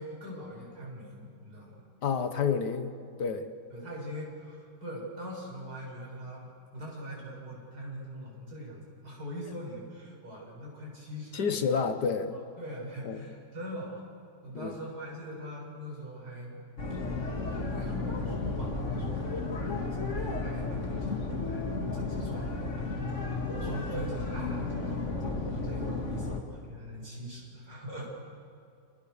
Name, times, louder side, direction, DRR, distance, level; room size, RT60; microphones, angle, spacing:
voice 1, 0.0-1.8 3.7-11.7 12.3-14.0 14.4-16.6 16.9-17.0 17.7-28.1, equal, 60° right, -3 dB, 8.0 m, -42 dB
voice 2, 2.0-2.9 3.2-3.5 11.3-12.4 13.0-13.3 14.5-14.7 23.6-23.9, left 6 dB, 70° left, 9 dB, 1.9 m, -29 dB
sound 1, 16.8-26.4, left 3 dB, 40° left, 2.7 m, -33 dB
30.0 x 28.5 x 6.7 m, 2.4 s
omnidirectional pair, 1.9 m